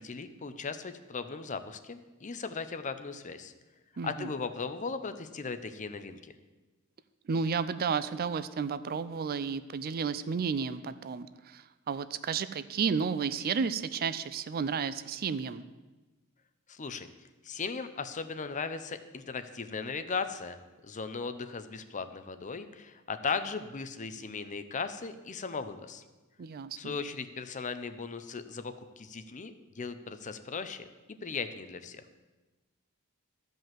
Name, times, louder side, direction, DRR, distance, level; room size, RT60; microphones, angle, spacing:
voice 1, 0.0-3.5 4.0-6.3 16.7-17.1 17.4-26.0 26.8-30.9 31.2-32.0, left 5 dB, 35° left, 10 dB, 0.6 m, -37 dB
voice 2, 4.0-4.3 7.3-15.6 26.4-27.0, right 5 dB, 45° right, 14 dB, 0.4 m, -32 dB
13.0 x 5.3 x 7.5 m, 1.2 s
head